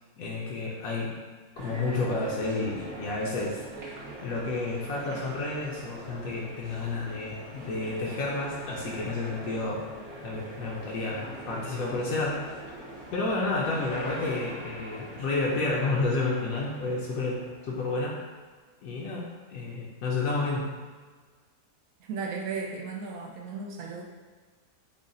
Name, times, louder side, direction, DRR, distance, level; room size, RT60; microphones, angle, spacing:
voice 1, 0.2-1.1 1.6-3.6 4.2-9.8 10.2-12.4 13.1-18.2 18.8-20.7, left 3 dB, 75° left, -3 dB, 1.0 m, -30 dB
sound 1, 1.6-18.2, right 1 dB, 55° right, 1.1 m, -43 dB
voice 2, 22.0-24.0, right 4 dB, 80° right, -1 dB, 1.1 m, -35 dB
3.8 x 2.1 x 3.8 m, 1.5 s
omnidirectional pair, 1.5 m